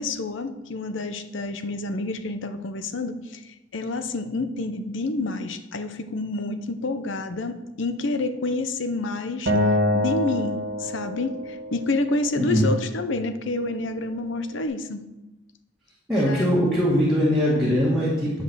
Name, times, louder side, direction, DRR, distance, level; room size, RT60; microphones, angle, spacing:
voice 1, 0.0-9.5 9.9-15.0 16.2-16.7, left 2 dB, 70° left, 9 dB, 0.7 m, -28 dB
Acoustic guitar, 9.5-12.7, left 1 dB, 85° right, 1.5 m, -26 dB
voice 2, 16.1-18.4, equal, ahead, -8 dB, 2.1 m, -21 dB
10.0 x 5.2 x 6.3 m, 1.0 s
head